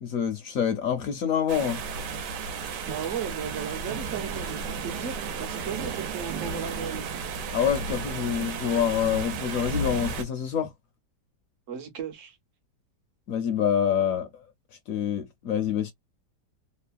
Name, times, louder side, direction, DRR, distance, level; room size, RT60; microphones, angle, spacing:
voice 1, 0.0-1.8 7.5-10.7 13.3-14.3 14.9-15.9, left 8 dB, 65° left, 0.9 m, -26 dB
sound 1, 1.5-10.2, right 4 dB, 80° right, 1.3 m, -33 dB
voice 2, 2.9-7.1 11.7-12.4, right 7 dB, 55° right, 1.0 m, -35 dB
3.1 x 2.0 x 2.4 m
omnidirectional pair, 1.8 m